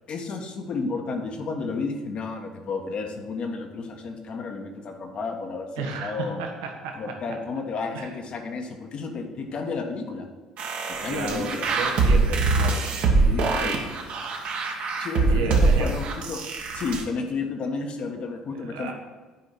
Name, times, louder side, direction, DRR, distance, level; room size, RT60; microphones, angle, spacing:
voice 1, 0.1-6.4 6.9-10.3 11.0-11.7 13.3-13.7 15.0-16.4 16.7-18.9, left 4 dB, 45° left, 3 dB, 1.4 m, -32 dB
voice 2, 5.8-7.2 7.9-8.2 11.1-13.0 13.6-13.9 15.0-15.9 18.5-18.9, right 4 dB, 70° right, 2 dB, 1.2 m, -33 dB
sound 1, 10.6-17.0, right 3 dB, 50° right, 1.4 m, -23 dB
9.8 x 5.1 x 6.1 m, 1.3 s
figure-of-eight pair, 55°, 3 cm